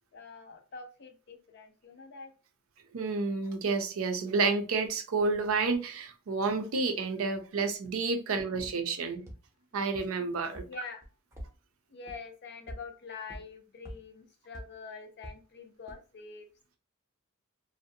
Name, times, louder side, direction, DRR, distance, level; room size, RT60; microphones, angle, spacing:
voice 1, 0.1-2.3 9.0-9.1 10.6-11.1 11.9-16.5, left 5 dB, 50° left, 0.5 m, -46 dB
voice 2, 2.9-9.3 9.7-10.6, right 4 dB, 70° right, 0.5 m, -30 dB
sound 1, 8.6-8.7 9.3-9.4 9.9-10.0 10.5-10.6 11.0-11.5 12.1-12.2 12.7-12.8 13.3-13.4 13.9-14.0 14.5-14.6 15.2-15.3 15.9-16.0, equal, 15° right, 0.6 m, -42 dB
2.5 x 2.1 x 2.6 m
head